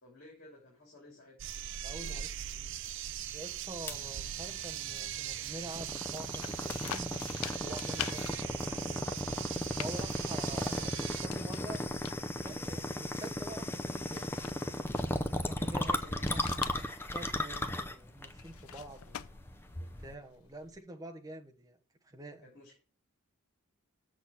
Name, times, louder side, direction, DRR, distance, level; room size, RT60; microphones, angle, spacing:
voice 1, 0.0-1.5 1.9-2.3 15.5-16.6 22.4-22.8, left 1 dB, 50° left, 3.2 m, -55 dB
sound 1, 1.4-11.3, right 11 dB, 55° right, 0.4 m, -40 dB
voice 2, 1.8-2.3 2.5-2.7 3.3-7.1 7.6-9.1 9.8-14.4 15.4-16.0 16.3-16.4 17.1-19.2 19.8-21.8 22.0-22.5, right 1 dB, 15° right, 1.0 m, -47 dB
sound 2, 3.9-20.1, left 1 dB, 10° left, 0.6 m, -36 dB
sound 3, 6.4-20.8, left 10 dB, 75° left, 0.5 m, -47 dB
7.1 x 6.3 x 6.0 m
head